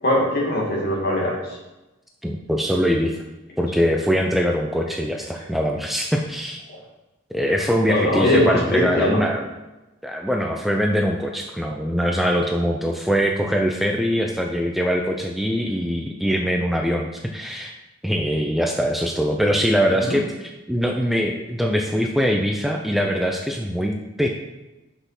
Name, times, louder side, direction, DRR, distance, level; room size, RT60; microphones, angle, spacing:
voice 1, 0.0-1.6 7.9-9.3 20.0-20.2, left 1 dB, 50° left, -3 dB, 2.5 m, -21 dB
voice 2, 2.2-3.2 3.6-6.6 7.3-9.5 10.0-17.7 18.0-24.3, equal, ahead, 1 dB, 0.5 m, -22 dB
6.1 x 5.6 x 6.0 m, 1.0 s
head